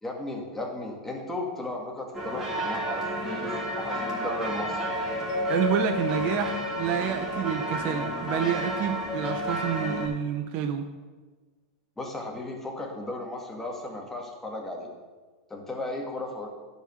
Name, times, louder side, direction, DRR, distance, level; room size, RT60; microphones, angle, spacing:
voice 1, 0.0-4.9 12.0-14.9 15.5-16.5, left 2 dB, 10° left, 0 dB, 2.0 m, -35 dB
sound 1, 2.1-10.1, right 1 dB, 10° right, 2.7 m, -32 dB
Mallet percussion, 5.3-8.3, left 4 dB, 75° left, 1.4 m, -34 dB
voice 2, 5.5-10.9, right 8 dB, 45° right, 6 dB, 0.7 m, -28 dB
11.5 x 5.2 x 6.9 m, 1.3 s
supercardioid pair, 130°, 3 cm